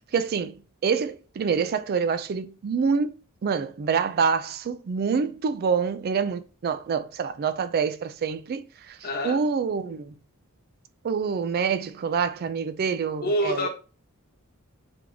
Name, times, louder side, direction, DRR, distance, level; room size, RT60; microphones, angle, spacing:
voice 1, 0.1-0.6 0.8-10.1 11.0-13.7, right 6 dB, 45° right, 0.3 m, -26 dB
voice 2, 9.0-9.4 13.2-13.7, equal, 45° left, 1.0 m, -26 dB
3.7 x 3.4 x 3.4 m
head